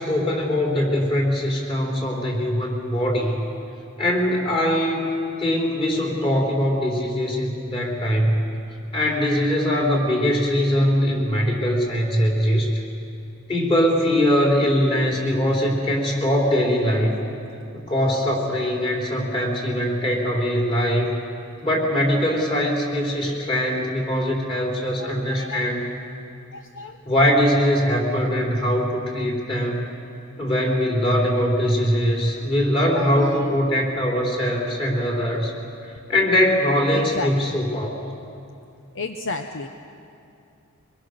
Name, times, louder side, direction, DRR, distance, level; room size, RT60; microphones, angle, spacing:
voice 1, 0.0-3.4 4.0-5.1 5.4-8.4 8.9-12.7 13.5-17.1 17.7-21.1 21.6-25.8 27.1-29.8 30.4-35.5 36.1-37.9, equal, 25° left, -1 dB, 3.8 m, -21 dB
voice 2, 24.2-24.6 25.0-25.7 26.5-27.0 31.2-31.3 32.9-33.5 36.9-37.6 38.9-39.7, left 3 dB, 55° left, 5 dB, 0.9 m, -33 dB
24.5 x 21.5 x 6.6 m, 2.6 s
head